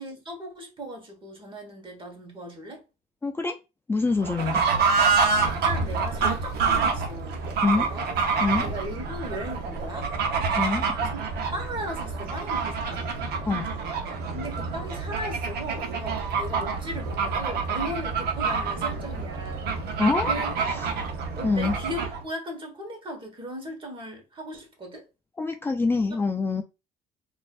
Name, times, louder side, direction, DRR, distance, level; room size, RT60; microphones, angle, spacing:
voice 1, 0.0-2.8 5.4-7.4 7.7-8.1 8.6-10.1 11.0-13.2 14.3-20.5 21.3-25.0 26.1-26.2, equal, 30° right, 1.4 m, -37 dB
voice 2, 3.2-3.6 3.9-4.6 7.6-7.9 8.4-8.7 10.5-10.9 13.5-13.7 20.0-20.3 20.7-20.9 21.4-21.8 25.4-26.6, left 3 dB, 15° left, 0.3 m, -25 dB
Fowl / Bird, 4.2-22.2, right 5 dB, 70° right, 0.9 m, -27 dB
4.2 x 2.6 x 2.4 m
cardioid pair, 110°, 17 cm